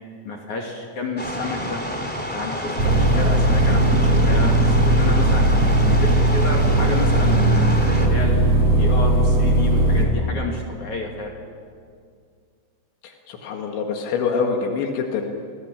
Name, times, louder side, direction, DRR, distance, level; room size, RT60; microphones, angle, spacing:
voice 1, 0.2-1.8 2.3-5.5 5.8-11.3, left 3 dB, 45° left, 0 dB, 3.4 m, -30 dB
sound 1, 1.2-8.1, equal, 5° left, 2.0 m, -29 dB
sound 2, 2.8-10.1, right 1 dB, 35° right, 5.6 m, -18 dB
voice 2, 13.0-15.3, left 5 dB, 80° left, 2 dB, 4.2 m, -25 dB
29.5 x 20.5 x 8.9 m, 2.2 s
omnidirectional pair, 5.2 m